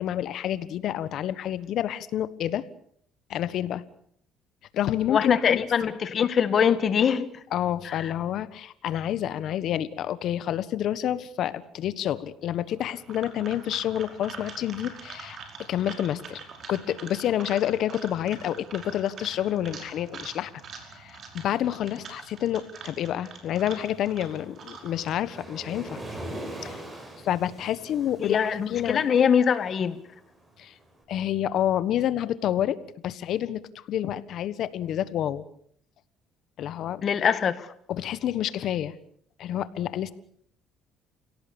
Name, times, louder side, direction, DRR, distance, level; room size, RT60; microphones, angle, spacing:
voice 1, 0.0-2.6 3.3-3.8 4.7-5.6 7.5-15.4 15.7-16.4 16.7-20.5 20.9-26.0 26.6-26.8 27.2-28.4 28.7-29.0 30.6-30.7 31.1-32.8 33.0-35.4 36.6-37.0 37.9-38.9 39.4-40.1, left 11 dB, 65° left, 1.4 m, -28 dB
voice 2, 5.1-7.3 7.9-8.1 28.2-30.0 37.0-37.7, left 7 dB, 45° left, 1.7 m, -23 dB
sound 1, 12.7-25.1, right 5 dB, 50° right, 5.2 m, -44 dB
Waves surf, 23.8-30.9, right 1 dB, 20° right, 6.9 m, -42 dB
29.5 x 17.5 x 7.1 m
cardioid pair, 115°, 0 cm